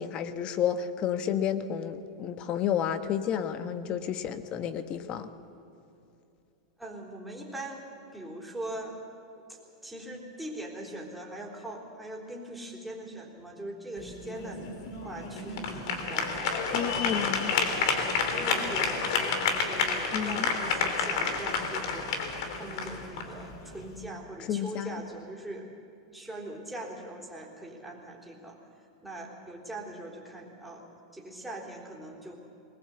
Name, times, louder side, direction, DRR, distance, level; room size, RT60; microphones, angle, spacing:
voice 1, 0.0-5.3 16.7-17.5 20.1-20.5 24.5-25.0, left 9 dB, 40° left, 11 dB, 1.3 m, -31 dB
voice 2, 6.8-9.0 9.3-14.6 15.0-16.5 17.0-17.3 17.8-22.2 22.5-25.7 26.1-28.6 29.0-30.8 31.1-32.4, right 1 dB, 5° right, -1 dB, 4.0 m, -41 dB
sound 1, 14.0-24.1, left 5 dB, 65° left, 3.0 m, -30 dB
21.0 x 19.5 x 8.0 m, 2.6 s
hypercardioid pair, 115°, 3 cm